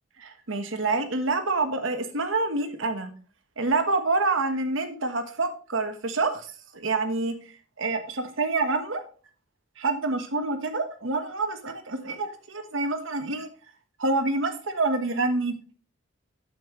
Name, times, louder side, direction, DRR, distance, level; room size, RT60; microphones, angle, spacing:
voice 1, 0.2-3.1 3.6-6.5 6.7-7.3 7.8-9.0 9.8-13.5 14.0-15.5, right 3 dB, 70° right, 7 dB, 1.5 m, -27 dB
8.6 x 7.9 x 3.2 m, 0.38 s
head